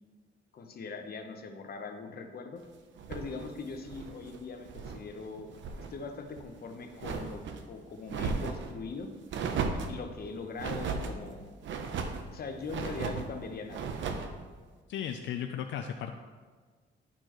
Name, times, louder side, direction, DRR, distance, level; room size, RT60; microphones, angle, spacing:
voice 1, 0.5-2.6 3.1-5.5 5.8-7.4 7.7-9.1 9.9-11.5 12.3-13.8, left 4 dB, 50° left, 5 dB, 1.0 m, -41 dB
sound 1, 3.0-5.0 5.4-5.9 6.3-7.6 8.1-8.7 9.3-10.0 10.6-11.2 11.6-12.3 12.7-13.3 13.7-14.3, right 5 dB, 70° right, 0.7 m, -35 dB
voice 2, 14.9-16.1, left 9 dB, 70° left, 6 dB, 0.5 m, -35 dB
11.5 x 4.4 x 3.0 m, 1.5 s
cardioid pair, 90°, 20 cm